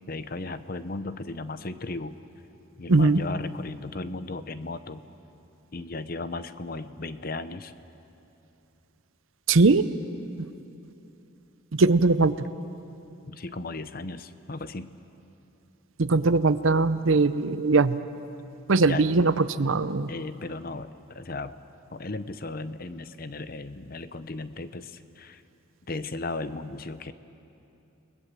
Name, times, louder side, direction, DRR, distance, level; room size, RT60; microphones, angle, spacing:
voice 1, 0.1-2.1 2.8-5.0 5.7-7.7 13.3-14.9 18.8-19.1 20.1-21.6 21.9-25.4 25.9-27.1, left 3 dB, 45° left, 12 dB, 0.7 m, -36 dB
voice 2, 2.9-3.2 9.5-9.9 11.7-12.5 16.0-18.0 18.7-20.1, right 3 dB, 70° right, 14 dB, 0.7 m, -20 dB
30.0 x 20.0 x 7.5 m, 2.9 s
head